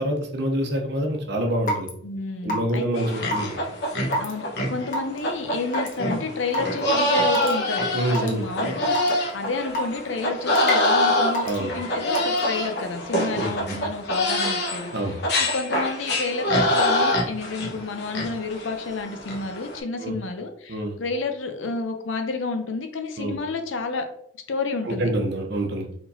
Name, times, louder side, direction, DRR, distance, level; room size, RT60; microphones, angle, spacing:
voice 1, 0.0-1.9 2.4-3.5 7.9-8.4 11.4-11.7 13.3-13.8 14.9-15.2 20.0-20.1 20.7-21.0 23.2-23.3 24.8-25.9, right 1 dB, 60° right, 3 dB, 0.9 m, -26 dB
Raindrop / Water tap faucet / Drip, 1.7-1.9 2.5-2.8 3.3-3.5 4.1-4.3 4.9-5.2 5.7-5.9 6.5-6.6 7.3-7.5 8.1-8.3 8.9-9.1 9.7-10.0 10.5-10.9 11.3-11.6 12.1-12.4, equal, 45° left, 1.0 m, -26 dB
voice 2, 2.0-3.1 4.2-14.9 15.4-24.0 24.5-25.1, left 3 dB, 80° left, 6 dB, 0.7 m, -30 dB
sound 1, 3.0-19.8, left 1 dB, 60° left, 1.2 m, -25 dB
4.6 x 3.8 x 2.7 m, 0.66 s
head